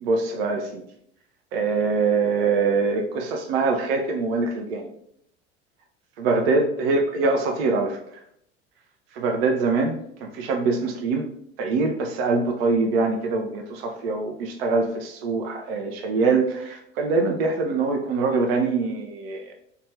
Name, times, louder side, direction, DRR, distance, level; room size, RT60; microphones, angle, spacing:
voice 1, 0.0-0.8 1.5-4.9 6.2-8.0 9.1-11.3 11.6-19.5, right 4 dB, 60° right, 3 dB, 0.4 m, -24 dB
2.5 x 2.3 x 3.1 m, 0.70 s
figure-of-eight pair, 65°, 34 cm